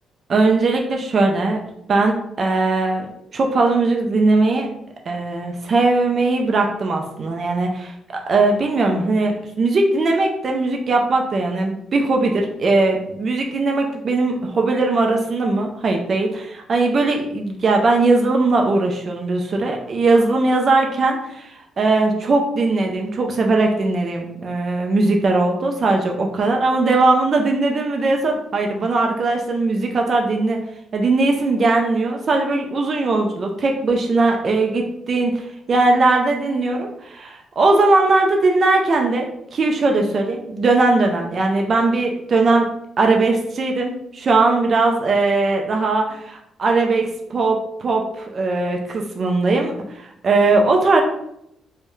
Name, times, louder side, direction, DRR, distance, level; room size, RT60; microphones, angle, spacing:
voice 1, 0.3-1.6 1.9-4.7 5.1-30.6 30.9-42.7 43.0-51.0, right 3 dB, 45° right, 2 dB, 0.3 m, -19 dB
2.2 x 2.0 x 3.0 m, 0.78 s
cardioid pair, 90°, 0 cm